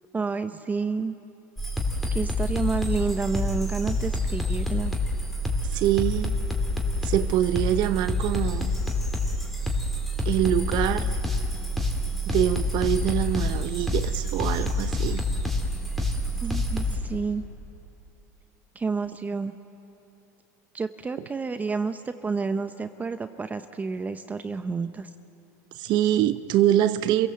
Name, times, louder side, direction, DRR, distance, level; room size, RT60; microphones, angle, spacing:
voice 1, 0.1-1.1 2.1-4.9 16.4-17.4 18.8-19.6 20.7-25.1, right 4 dB, 15° right, 10 dB, 0.7 m, -29 dB
sound 1, 1.6-17.0, left 1 dB, ahead, 3.2 m, -27 dB
voice 2, 5.7-6.4 7.0-8.7 10.2-11.2 12.3-15.2 21.2-21.3 25.7-27.3, right 12 dB, 55° right, 12 dB, 0.8 m, -24 dB
28.5 x 17.0 x 7.7 m, 3.0 s
supercardioid pair, 110°, 9 cm